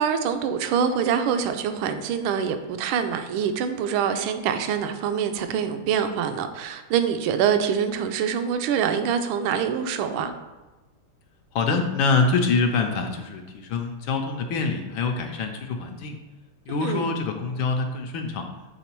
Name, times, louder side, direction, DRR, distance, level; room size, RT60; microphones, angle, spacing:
voice 1, 0.0-10.3 16.8-17.2, right 7 dB, 75° right, 8 dB, 1.4 m, -25 dB
voice 2, 11.5-16.2 16.7-18.5, left 4 dB, 75° left, 4 dB, 1.3 m, -25 dB
7.2 x 3.8 x 4.4 m, 1.2 s
omnidirectional pair, 2.4 m